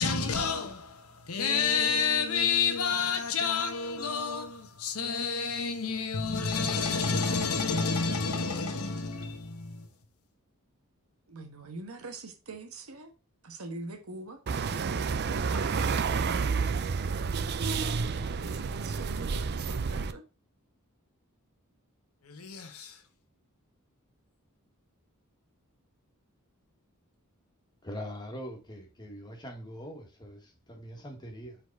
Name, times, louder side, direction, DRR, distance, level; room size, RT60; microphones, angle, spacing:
voice 1, 0.0-9.8 22.3-23.0, left 5 dB, 90° left, 1.1 m, -29 dB
voice 2, 11.3-13.1 13.4-14.4 14.7-15.8 17.8-20.2, right 2 dB, 85° right, 1.3 m, -44 dB
sound 1, 14.5-20.1, right 5 dB, 50° right, 0.5 m, -30 dB
voice 3, 27.8-31.6, equal, 20° left, 1.6 m, -42 dB
5.0 x 4.1 x 4.6 m
head